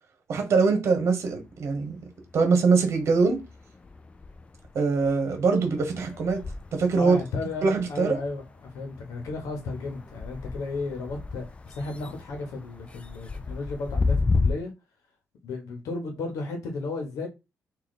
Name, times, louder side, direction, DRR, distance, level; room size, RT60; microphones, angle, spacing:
voice 1, 0.3-2.0 2.3-3.4 4.7-6.4 6.7-7.2 7.6-8.2, right 4 dB, 55° right, 1.2 m, -23 dB
sound 1, 1.3-2.5 2.8-14.5, left 4 dB, 20° left, 0.4 m, -33 dB
voice 2, 7.0-8.4 8.7-14.7 15.4-17.3, left 3 dB, 85° left, 1.1 m, -34 dB
3.2 x 2.7 x 4.0 m
cardioid pair, 115°, 6 cm